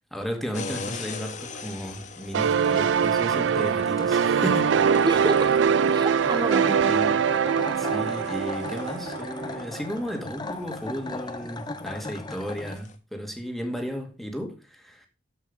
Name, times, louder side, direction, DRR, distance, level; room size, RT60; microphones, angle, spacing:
voice 1, 0.0-4.8 6.9-7.3 7.8-15.1, equal, ahead, 2.1 m, -34 dB
sound 1, 0.5-12.9, left 4 dB, 45° left, 1.3 m, -43 dB
sound 2, 2.3-9.8, right 7 dB, 90° right, 0.4 m, -23 dB
sound 3, 2.5-12.8, left 2 dB, 25° left, 0.8 m, -38 dB
voice 2, 5.1-5.6 5.9-6.9, right 2 dB, 25° right, 0.6 m, -28 dB
13.0 x 5.5 x 5.3 m
head